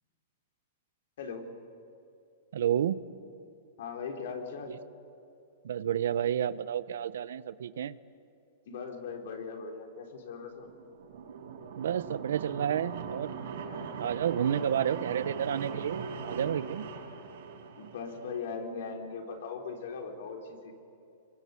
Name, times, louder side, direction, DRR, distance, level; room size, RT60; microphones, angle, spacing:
voice 1, 1.2-1.5 3.8-4.7 8.7-10.7 14.5-14.6 17.8-20.7, left 5 dB, 60° left, 2 dB, 4.4 m, -39 dB
voice 2, 2.5-3.0 4.7-4.8 5.6-8.0 11.8-13.3 14.0-16.9, right 9 dB, 80° right, 15 dB, 0.9 m, -30 dB
sound 1, 10.6-18.5, right 5 dB, 65° right, 5.4 m, -40 dB
27.5 x 23.5 x 8.6 m, 2.7 s
supercardioid pair, 165°, 0 cm